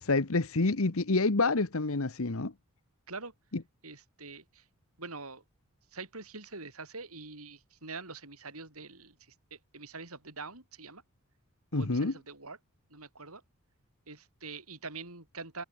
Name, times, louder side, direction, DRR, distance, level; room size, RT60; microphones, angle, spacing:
voice 1, 0.0-2.5 3.5-3.6 11.7-12.1, left 3 dB, 65° left, 1.2 m, -28 dB
voice 2, 3.8-4.6 5.0-5.4 5.9-9.1 9.5-11.0 11.7-12.6 12.9-13.4 14.1-15.6, right 3 dB, 75° right, 7.8 m, -44 dB
head